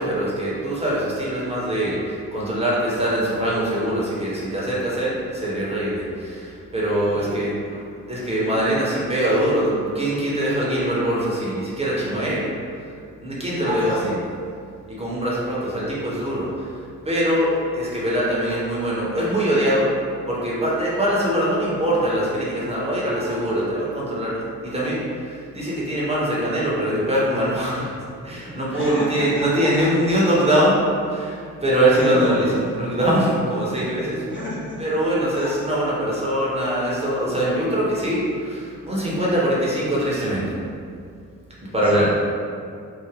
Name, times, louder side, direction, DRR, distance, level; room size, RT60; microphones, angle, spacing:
voice 1, 0.0-7.5 8.1-12.5 13.2-14.1 14.9-16.6 17.0-19.9 20.3-28.0 28.2-30.8 31.1-32.4 32.8-34.2 34.8-40.6 41.7-42.1, right 1 dB, 15° right, -7 dB, 0.7 m, -22 dB
voice 2, 7.0-7.5 13.6-14.1 23.1-24.1 28.7-29.9 30.2-30.3 31.9-32.3 34.3-34.8 35.3-35.7 41.8-42.1, equal, 25° left, -7 dB, 0.5 m, -33 dB
2.5 x 2.0 x 3.3 m, 2.3 s
figure-of-eight pair, 40°, 46 cm